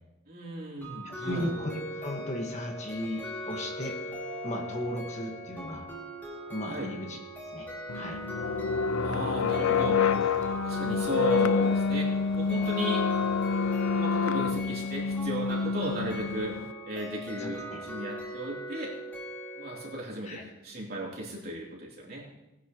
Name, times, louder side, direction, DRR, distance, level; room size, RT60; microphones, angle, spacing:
voice 1, 0.3-1.5 6.7-6.9 9.0-10.1 10.6-13.0 13.7-16.6 16.8-18.9 19.6-22.2, right 1 dB, 45° right, -3 dB, 3.3 m, -35 dB
sound 1, 0.8-20.0, equal, 10° left, 2.5 m, -40 dB
voice 2, 1.0-4.0 4.4-5.9 6.5-7.2 7.5-7.7 7.9-8.2 17.4-17.8 20.2-20.4, left 1 dB, 35° left, 1 dB, 1.6 m, -36 dB
sound 2, 7.9-16.7, left 5 dB, 85° left, 0.5 m, -27 dB
19.0 x 10.5 x 3.1 m, 0.98 s
head